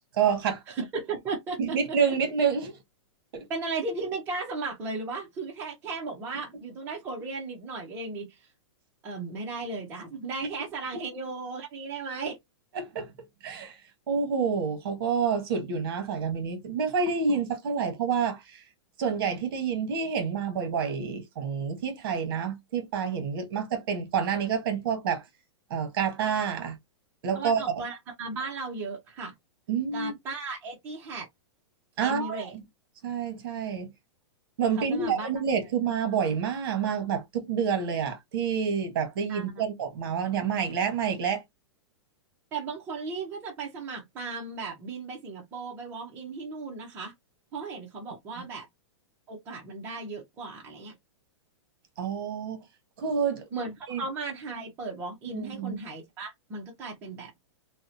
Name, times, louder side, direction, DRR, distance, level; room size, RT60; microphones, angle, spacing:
voice 1, 0.1-0.6 1.6-2.7 3.3-3.5 10.9-11.0 12.7-13.1 13.4-13.8 14.1-18.6 19.0-25.2 25.7-26.8 27.2-27.6 29.7-30.1 32.0-32.5 33.0-33.9 34.6-41.4 52.0-52.6 53.0-53.4 53.9-54.0 55.3-55.8, right 6 dB, 50° right, 1.0 m, -28 dB
voice 2, 0.7-1.8 3.5-8.5 9.0-12.4 27.3-29.3 29.9-31.3 32.0-32.6 34.8-35.3 39.3-39.6 42.5-47.1 47.5-48.7 49.3-50.9 53.5-57.3, right 3 dB, 15° right, 0.5 m, -36 dB
2.7 x 2.1 x 2.5 m
hypercardioid pair, 165°, 15 cm